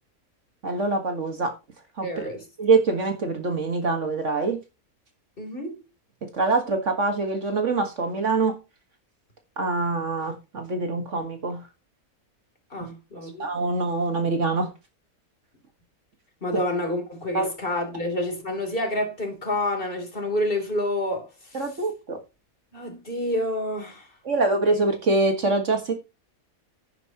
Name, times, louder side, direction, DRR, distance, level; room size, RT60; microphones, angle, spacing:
voice 1, 0.6-1.5 2.0-2.1 2.6-4.6 6.2-8.6 9.6-11.6 12.8-12.9 13.4-14.7 16.5-16.6 17.3-17.5 21.5-22.2 24.3-25.9, right 3 dB, 55° right, 1.9 m, -24 dB
voice 2, 2.0-2.4 5.4-5.8 12.7-13.4 16.4-21.6 22.7-24.1, left 1 dB, 40° left, 3.4 m, -28 dB
10.5 x 10.5 x 2.9 m
omnidirectional pair, 1.5 m